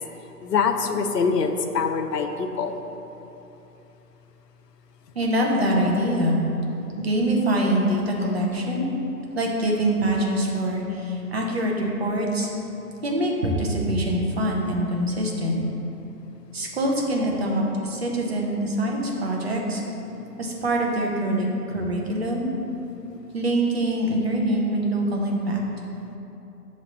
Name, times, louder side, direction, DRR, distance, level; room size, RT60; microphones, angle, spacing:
voice 1, 0.4-2.8, left 5 dB, 80° left, 6 dB, 0.7 m, -24 dB
voice 2, 5.1-6.4 7.0-8.9 9.3-12.5 13.0-15.6 16.5-19.8 20.4-22.5 23.3-25.6, right 1 dB, 40° right, -1 dB, 0.8 m, -24 dB
6.3 x 3.2 x 5.2 m, 3.0 s
hypercardioid pair, 165°, 48 cm